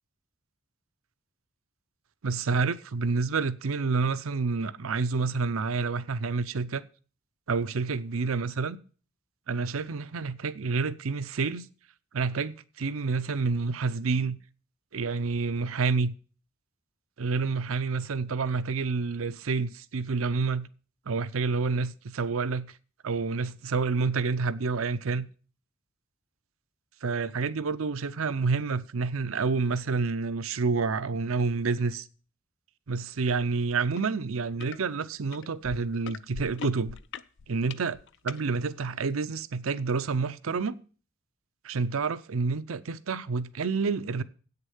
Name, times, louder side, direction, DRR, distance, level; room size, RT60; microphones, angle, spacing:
voice 1, 2.2-6.8 7.5-8.8 9.5-11.7 12.1-14.4 14.9-16.1 17.2-20.7 21.1-22.7 23.0-25.3 27.0-32.1 32.9-37.0 37.5-38.0 38.2-40.8 41.6-44.2, right 4 dB, 80° right, 0.6 m, -28 dB
sound 1, 33.9-34.1 34.4-34.8 35.3-38.4 39.1-39.2, left 6 dB, 60° left, 0.5 m, -41 dB
8.4 x 6.7 x 7.1 m
head